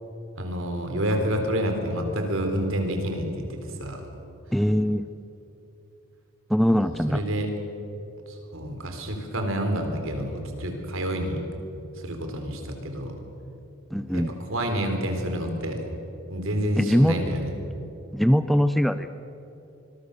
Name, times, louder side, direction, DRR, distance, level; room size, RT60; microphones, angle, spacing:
voice 1, 0.4-4.0 6.8-7.5 8.3-11.4 12.0-13.1 13.9-14.2 14.5-15.8 16.3-17.5, equal, 65° right, 4 dB, 4.0 m, -28 dB
voice 2, 4.5-5.0 6.5-7.2 13.9-14.3 16.8-17.2 18.1-19.1, equal, ahead, 10 dB, 0.5 m, -21 dB
25.0 x 22.0 x 6.8 m, 3.0 s
head